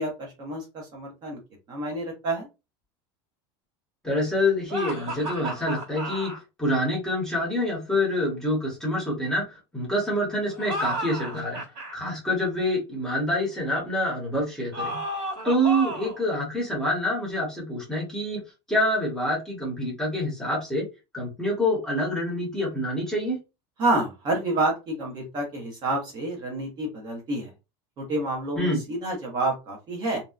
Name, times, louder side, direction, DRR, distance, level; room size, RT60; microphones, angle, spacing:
voice 1, 0.0-1.4 1.7-2.5 23.8-27.5 28.0-30.2, right 2 dB, 30° right, 0 dB, 0.8 m, -28 dB
voice 2, 4.0-6.3 6.6-11.6 11.9-15.0 15.4-18.4 18.7-20.9 21.1-23.4 28.6-28.8, left 1 dB, 5° left, -2 dB, 0.9 m, -26 dB
sound 1, 4.7-6.4 10.5-11.9 14.7-16.2, right 1 dB, 50° right, 1.5 m, -32 dB
2.7 x 2.1 x 2.3 m, 0.27 s
supercardioid pair, 165°, 14 cm